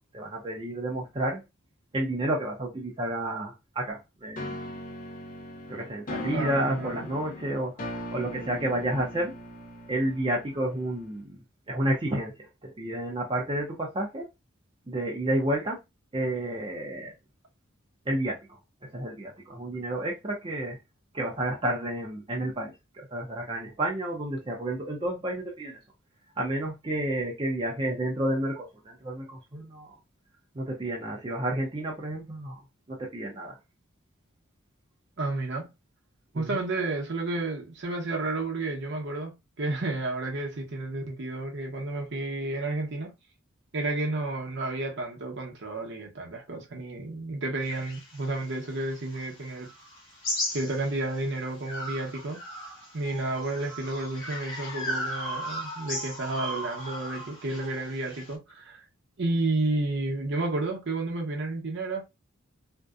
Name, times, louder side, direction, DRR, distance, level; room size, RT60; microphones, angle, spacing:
voice 1, 0.1-1.4 1.9-4.8 5.7-7.7 8.1-9.3 9.9-11.4 11.7-12.3 12.6-14.3 14.9-15.8 16.1-17.1 18.1-18.4 18.8-20.8 21.1-25.8 26.4-29.9 30.5-32.5 32.9-33.6 36.3-36.6, right 1 dB, 25° right, 0.5 m, -30 dB
sound 1, 4.4-11.2, left 1 dB, 40° left, 0.5 m, -39 dB
voice 2, 6.3-7.1 35.2-35.7 36.3-43.1 43.7-49.7 50.5-52.4 52.9-58.8 59.2-62.0, right 2 dB, 55° right, 0.8 m, -31 dB
sound 2, 47.6-51.2 51.6-58.3, equal, 75° left, 1.1 m, -36 dB
2.6 x 2.1 x 2.3 m
head